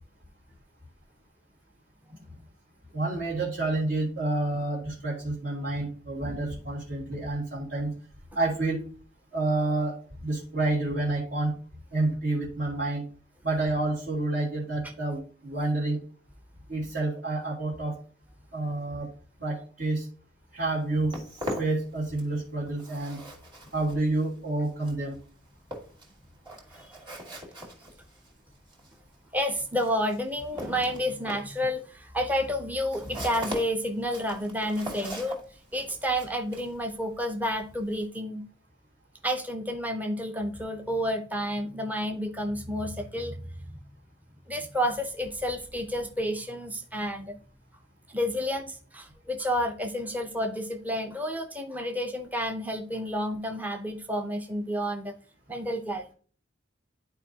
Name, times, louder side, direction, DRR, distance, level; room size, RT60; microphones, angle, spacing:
voice 1, 2.9-7.9 8.3-8.8 9.3-9.9 10.2-11.5 11.9-13.0 13.4-16.0 16.7-17.9 18.5-19.1 19.4-20.1 20.5-21.1 21.6-23.2 23.7-25.2, right 2 dB, 60° right, -7 dB, 2.3 m, -29 dB
Walk footsteps, 20.7-22.4 22.7-38.1, equal, 25° right, 2.1 m, -41 dB
voice 2, 29.3-38.4 39.2-43.5 44.5-47.4 48.1-55.1 55.5-56.1, equal, 10° right, 4 dB, 0.6 m, -30 dB
11.5 x 4.6 x 2.8 m, 0.42 s
head